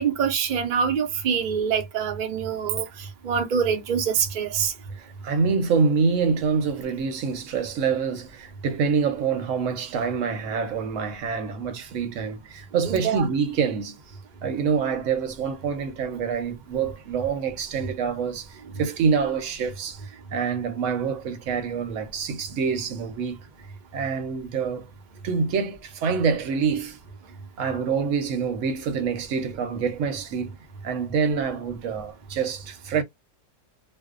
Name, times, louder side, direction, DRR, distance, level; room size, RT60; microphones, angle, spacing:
voice 1, 0.0-2.9 3.2-4.7 12.9-13.2, right 7 dB, 80° right, 0.4 m, -25 dB
voice 2, 4.9-13.9 14.4-23.4 23.9-24.9 25.2-27.0 27.6-30.5 30.8-33.0, right 5 dB, 65° right, 0.9 m, -26 dB
2.6 x 2.0 x 2.3 m
omnidirectional pair, 1.7 m